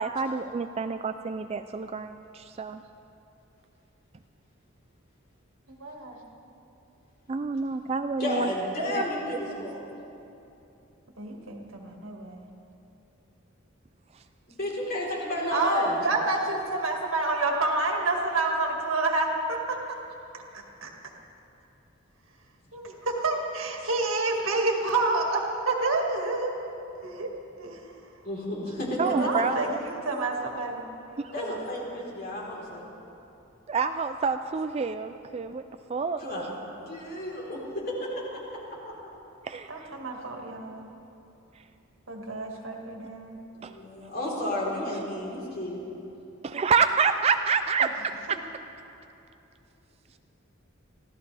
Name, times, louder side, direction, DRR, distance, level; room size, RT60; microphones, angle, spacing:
voice 1, 0.0-2.8 7.3-8.5 8.9-9.1 14.1-14.2 29.0-29.7 31.2-31.3 33.7-35.6 35.9-36.2 39.4-39.9 43.6-43.7 46.4-47.9, right 5 dB, 30° right, 9 dB, 0.3 m, -27 dB
voice 2, 5.7-6.2 11.2-12.4 15.5-19.8 20.5-20.9 22.7-26.6 27.0-27.3 27.6-27.9 29.2-31.6 39.7-40.9 42.1-43.4, right 2 dB, 80° right, 1 dB, 2.0 m, -29 dB
voice 3, 8.2-9.8 14.5-16.0 28.2-29.3 31.3-32.9 36.2-37.8 38.3-38.8 43.6-45.8, left 1 dB, 50° left, -4 dB, 4.0 m, -32 dB
25.0 x 16.0 x 3.4 m, 2.9 s
head